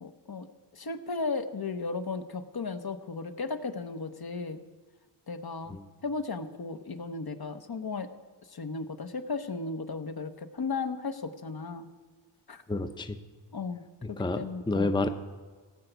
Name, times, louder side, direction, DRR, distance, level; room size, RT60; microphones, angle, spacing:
voice 1, 0.0-0.5 0.7-4.6 5.3-5.8 6.0-8.1 8.5-11.9 12.5-12.6 13.5-13.8 14.1-14.9, left 4 dB, 55° left, 9 dB, 0.9 m, -35 dB
voice 2, 12.7-13.2 14.0-15.1, left 2 dB, 10° left, 9 dB, 0.6 m, -29 dB
17.0 x 5.8 x 8.0 m, 1.5 s
wide cardioid pair, 75°, 46 cm